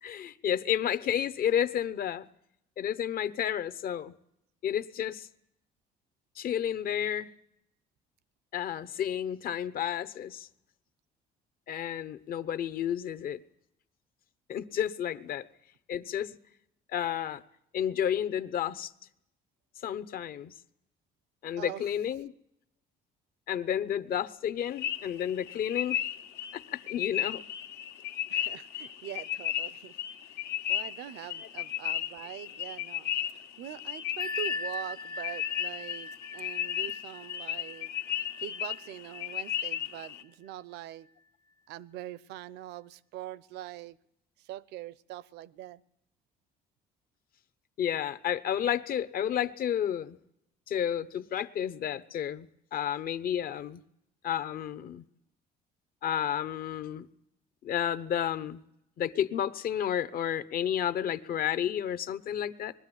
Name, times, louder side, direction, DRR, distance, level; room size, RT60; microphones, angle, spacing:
voice 1, 0.0-2.3 2.8-4.1 4.6-5.3 6.4-7.3 8.5-10.5 11.7-13.4 14.5-15.5 15.9-16.4 16.9-17.4 17.7-18.9 19.8-20.5 21.4-22.3 23.5-26.0 26.5-27.4 47.8-50.2 50.7-52.5 52.7-53.8 54.2-55.0 56.0-57.1 57.6-58.6 59.0-62.7, left 9 dB, 60° left, 1.0 m, -31 dB
sound 1, 24.6-40.2, left 12 dB, 80° left, 1.7 m, -35 dB
voice 2, 28.3-30.0 30.7-37.9 38.4-41.1 41.7-44.0 44.4-45.8, right 13 dB, 85° right, 0.7 m, -43 dB
Bell, 34.2-39.6, left 2 dB, 30° left, 0.7 m, -41 dB
21.5 x 13.0 x 9.9 m
cardioid pair, 110°, 17 cm